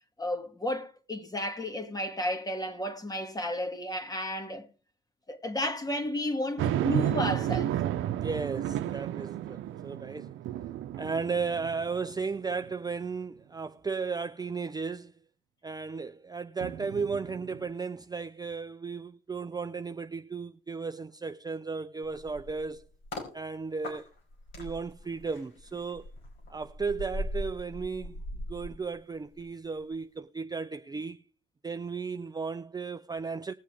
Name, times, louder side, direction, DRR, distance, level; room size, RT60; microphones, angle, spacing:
voice 1, 0.2-4.7 5.3-7.8, left 1 dB, 20° left, 2.0 m, -32 dB
sound 1, 6.6-12.1 12.6-12.7 16.6-17.7, right 12 dB, 85° right, 0.8 m, -32 dB
voice 2, 8.2-10.3 11.0-15.1 15.6-22.9 23.3-24.1 24.6-26.1 26.5-28.2 28.5-31.2 31.6-33.5, right 4 dB, 20° right, 0.6 m, -35 dB
sound 2, 22.0-23.3 23.8-29.4 29.7-30.0, left 1 dB, 75° left, 5.0 m, -40 dB
20.0 x 7.4 x 3.4 m
cardioid pair, 90°, 20 cm